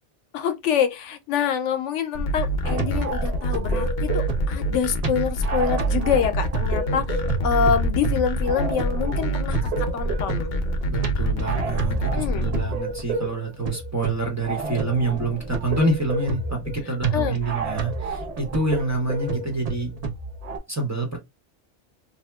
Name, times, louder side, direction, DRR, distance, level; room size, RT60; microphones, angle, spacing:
voice 1, 0.3-10.5 12.1-12.5 17.1-17.4, left 8 dB, 85° left, 0.9 m, -26 dB
sound 1, 2.1-12.6, right 1 dB, 50° left, 0.6 m, -26 dB
sound 2, 2.6-20.6, right 4 dB, 40° right, 0.6 m, -30 dB
voice 2, 10.8-19.9 20.7-21.2, right 2 dB, 15° right, 0.9 m, -27 dB
2.8 x 2.1 x 3.3 m
omnidirectional pair, 1.2 m